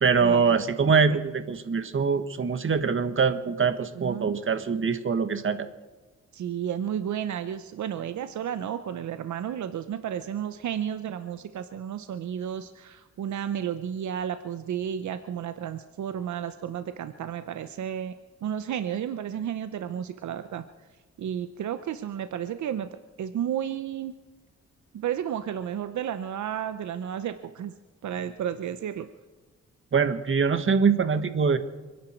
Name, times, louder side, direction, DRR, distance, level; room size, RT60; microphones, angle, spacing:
voice 1, 0.0-5.7 29.9-31.6, right 5 dB, 45° right, 10 dB, 1.6 m, -23 dB
voice 2, 3.9-4.3 6.3-18.1 18.4-20.6 21.2-24.2 24.9-27.7 28.0-29.1, right 9 dB, 75° right, 10 dB, 0.9 m, -32 dB
30.0 x 10.5 x 4.6 m, 1.3 s
cardioid pair, 80°, 29 cm